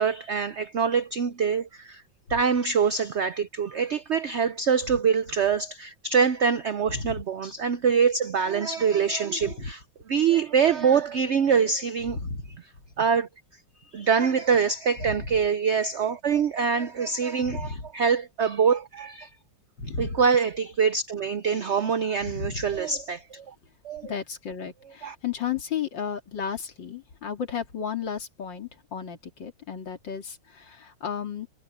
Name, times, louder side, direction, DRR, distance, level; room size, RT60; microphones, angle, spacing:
voice 1, 0.0-2.0 2.3-12.2 13.0-13.3 13.9-19.3 20.0-23.5 23.8-24.1 25.0-25.1, right 6 dB, 75° right, 0.6 m, -24 dB
voice 2, 12.1-12.5 15.0-15.4 17.4-17.8 19.8-20.2 22.2-22.7 24.0-31.5, left 6 dB, 75° left, 3.1 m, -33 dB
omnidirectional pair, 2.0 m